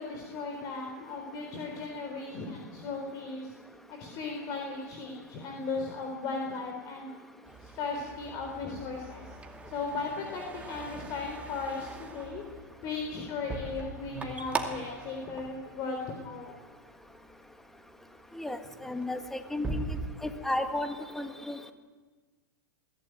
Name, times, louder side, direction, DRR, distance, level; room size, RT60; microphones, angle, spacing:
voice 1, 0.0-3.5 3.9-7.1 7.6-9.3 9.7-12.4 12.8-16.5, left 4 dB, 40° left, 2 dB, 4.1 m, -36 dB
sound 1, 7.4-16.4 16.8-17.3 17.9-18.1 18.4-20.1, right 3 dB, 15° right, 2.4 m, -41 dB
voice 2, 18.3-19.8 20.2-21.7, left 1 dB, 5° left, 7 dB, 1.9 m, -34 dB
22.5 x 15.5 x 9.1 m, 1.4 s
hypercardioid pair, 110°, 9 cm